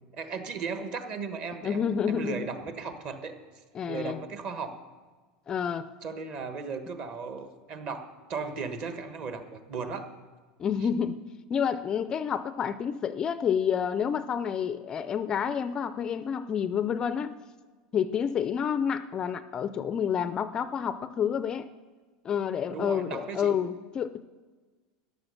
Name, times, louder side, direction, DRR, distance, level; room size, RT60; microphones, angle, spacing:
voice 1, 0.1-3.3 3.9-4.8 6.0-10.1 22.7-23.5, right 5 dB, 40° right, 8 dB, 1.3 m, -36 dB
voice 2, 1.6-2.5 3.7-4.2 5.5-5.9 10.6-11.2 11.5-17.3 17.9-21.7 22.2-24.2, left 7 dB, 25° left, 13 dB, 0.4 m, -29 dB
13.5 x 11.0 x 6.5 m, 1.4 s
supercardioid pair, 160°, 3 cm